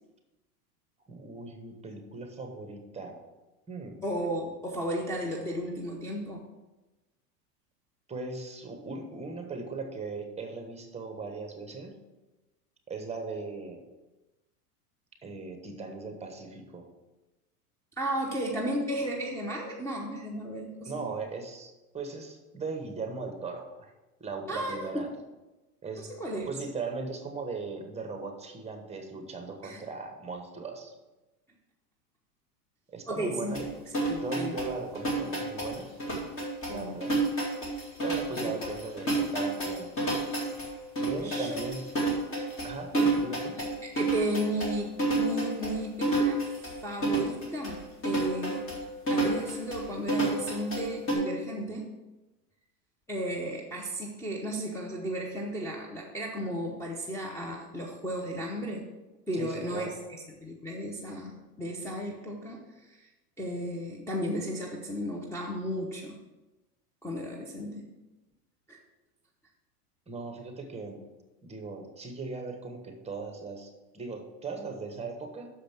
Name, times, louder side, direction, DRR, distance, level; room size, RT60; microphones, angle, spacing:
voice 1, 1.1-3.2 3.7-4.0 8.1-12.0 12.9-13.8 15.2-16.9 20.9-23.9 24.2-25.1 25.8-30.9 32.9-33.6 34.2-35.9 36.7-37.1 38.0-39.9 41.0-41.9 42.6-43.6 59.3-60.0 70.1-71.0 71.4-75.5, right 4 dB, 15° right, 4 dB, 1.1 m, -38 dB
voice 2, 4.0-6.4 18.0-21.0 24.5-25.1 26.2-26.5 29.6-29.8 33.1-33.6 34.0-34.6 36.7-37.0 38.4-38.5 41.2-41.6 42.9-43.1 43.6-43.7 43.9-46.4 46.8-48.7 49.1-51.9 53.1-58.8 59.3-63.1 63.4-66.2 67.0-67.9 68.7-68.8, equal, 5° left, -2 dB, 0.8 m, -34 dB
sound 1, 33.5-51.1, right 2 dB, 25° left, 2.4 m, -30 dB
6.6 x 5.0 x 5.9 m, 1.1 s
hypercardioid pair, 105°, 48 cm